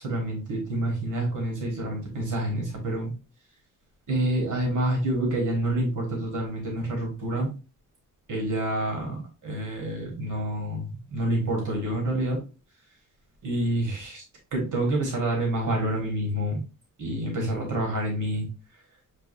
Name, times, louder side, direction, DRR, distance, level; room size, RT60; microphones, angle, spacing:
voice 1, 0.0-3.1 4.1-7.5 8.3-12.4 13.4-14.2 14.5-16.6 17.0-18.4, right 1 dB, 65° right, 0 dB, 1.4 m, -28 dB
6.8 x 2.3 x 2.6 m, 0.32 s
wide cardioid pair, 110°, 33 cm